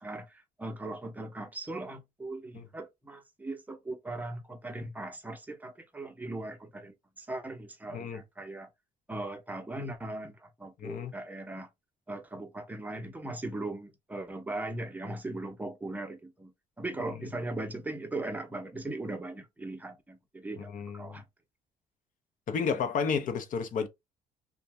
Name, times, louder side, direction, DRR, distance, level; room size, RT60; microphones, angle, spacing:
voice 1, 0.0-8.7 9.1-11.7 12.1-16.5 16.8-21.2, right 2 dB, 10° right, 0.7 m, -39 dB
voice 2, 7.9-8.2 10.8-11.1 17.1-17.3 20.6-21.2 22.5-23.9, left 6 dB, 50° left, 0.7 m, -32 dB
2.6 x 2.2 x 3.2 m
cardioid pair, 110°, 17 cm